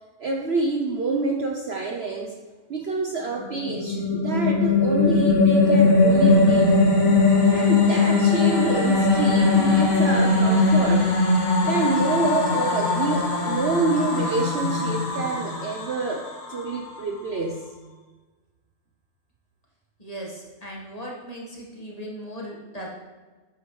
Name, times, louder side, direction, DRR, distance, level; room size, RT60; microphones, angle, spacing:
voice 1, 0.2-2.3 2.7-6.8 7.5-11.1 11.6-17.7, right 3 dB, 55° right, 1 dB, 0.8 m, -27 dB
sound 1, 3.4-16.8, left 3 dB, 65° left, 2.0 m, -20 dB
voice 2, 20.0-22.9, equal, 25° left, -3 dB, 1.6 m, -37 dB
9.3 x 8.7 x 3.2 m, 1.3 s
omnidirectional pair, 1.6 m